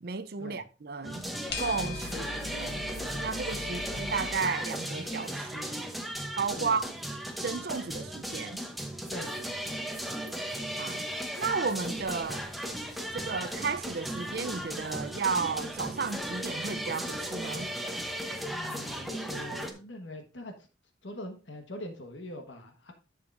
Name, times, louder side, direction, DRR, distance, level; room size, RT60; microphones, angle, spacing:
voice 1, 0.0-1.2 1.6-2.3 2.5-2.9 3.2-5.9 6.4-6.8 7.4-8.6 10.8-11.1 11.4-12.5 13.1-17.7, right 5 dB, 55° right, 0.5 m, -33 dB
sound 1, 1.0-19.7, right 1 dB, ahead, 0.8 m, -36 dB
sound 2, 1.5-4.4, left 4 dB, 55° left, 1.8 m, -40 dB
voice 2, 9.1-9.8 18.5-20.5 21.0-22.9, left 1 dB, 75° left, 1.2 m, -43 dB
sound 3, 11.8-17.1, equal, 20° right, 2.6 m, -56 dB
10.5 x 6.5 x 2.5 m
head